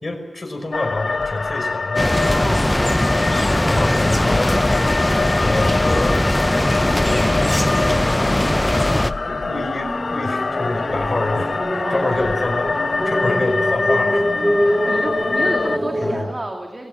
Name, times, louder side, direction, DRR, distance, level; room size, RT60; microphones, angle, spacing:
voice 1, 0.0-2.1 2.4-2.8 3.7-4.6 5.4-6.2 6.8-7.4 8.3-8.6 8.9-14.3 15.0-15.1 16.0-16.3, left 2 dB, 50° left, 3 dB, 5.1 m, -27 dB
sound 1, 0.7-15.8, left 4 dB, 70° left, 0.6 m, -24 dB
sound 2, 2.0-9.1, left 1 dB, 15° left, 0.7 m, -19 dB
voice 2, 2.3-2.8 3.5-4.4 11.8-12.3 14.6-16.9, right 1 dB, 40° right, 2 dB, 2.3 m, -30 dB
sound 3, 7.1-16.2, equal, 5° right, 3.2 m, -28 dB
21.0 x 16.5 x 7.4 m, 1.1 s
wide cardioid pair, 70°, 0 cm